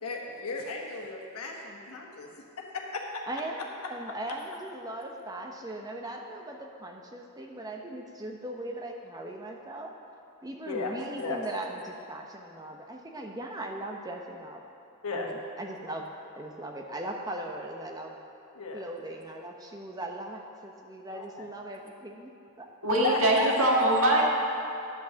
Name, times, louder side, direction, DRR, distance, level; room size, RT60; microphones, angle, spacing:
voice 1, 0.0-2.3 2.6-3.2 3.6-3.7 10.6-11.4 15.0-15.3 18.5-18.8 21.1-21.5 23.0-23.8, left 3 dB, 85° left, 0 dB, 1.3 m, -34 dB
voice 2, 3.3-3.6 3.9-9.9 10.4-14.6 15.1-16.1 16.3-18.2 18.7-22.3 22.6-22.7, right 1 dB, 15° right, 1 dB, 0.8 m, -39 dB
voice 3, 22.8-24.2, right 1 dB, 70° right, -3 dB, 1.8 m, -22 dB
10.5 x 5.4 x 6.9 m, 2.6 s
head